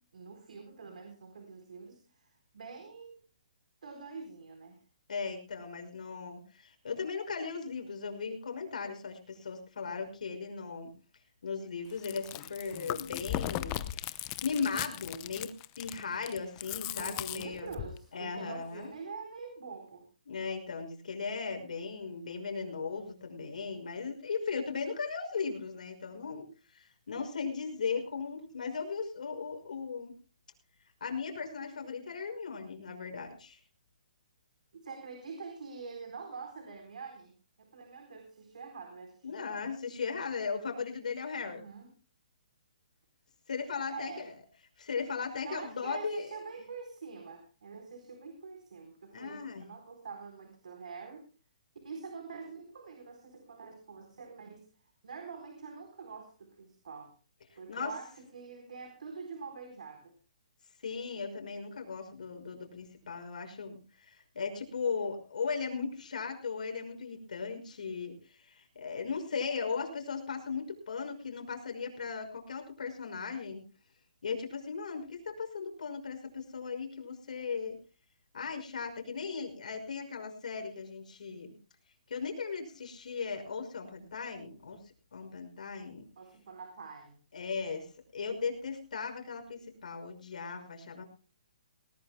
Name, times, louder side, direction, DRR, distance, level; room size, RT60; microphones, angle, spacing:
voice 1, 0.0-3.2 3.8-4.8 16.9-20.1 34.7-39.6 41.4-41.9 43.9-44.3 45.4-51.3 51.8-57.1 57.6-60.1 86.2-87.2, right 5 dB, 75° right, 4 dB, 4.1 m, -45 dB
voice 2, 5.1-10.9 11.4-17.7 18.1-18.9 20.3-30.1 31.0-33.6 39.2-41.6 43.5-44.4 44.8-46.3 49.1-49.7 57.7-57.9 60.8-73.6 74.2-77.8 78.3-81.5 82.1-84.8 85.1-86.0 87.3-87.9 88.1-91.0, left 5 dB, 75° left, 5 dB, 5.7 m, -37 dB
Chewing mastication, 11.9-18.0, left 15 dB, 25° left, 0.7 m, -38 dB
20.0 x 19.0 x 2.2 m, 0.34 s
hypercardioid pair, 160°, 4 cm